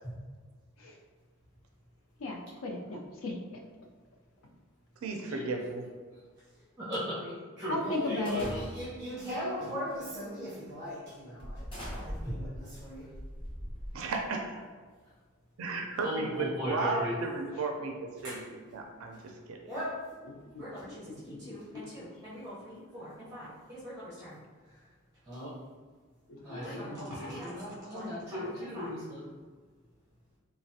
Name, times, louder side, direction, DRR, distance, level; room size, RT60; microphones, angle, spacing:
voice 1, 2.2-3.4 5.3-5.5 7.7-8.5 20.2-21.9 26.3-27.5, left 2 dB, 85° left, 0 dB, 0.4 m, -37 dB
voice 2, 5.0-5.8 13.9-14.6 15.6-19.6, right 3 dB, 85° right, 2 dB, 0.4 m, -35 dB
voice 3, 6.8-11.7 12.0-13.0 16.0-17.1 18.2-18.4 19.7-20.0 20.6-21.0 21.5-24.4 25.3-25.5 26.4-29.2, equal, 15° right, -9 dB, 0.7 m, -38 dB
sound 1, 8.3-9.1 9.9-10.1 10.6-10.7 11.4-14.3, equal, 25° left, 0.8 m, -41 dB
3.2 x 2.0 x 2.7 m, 1.5 s
head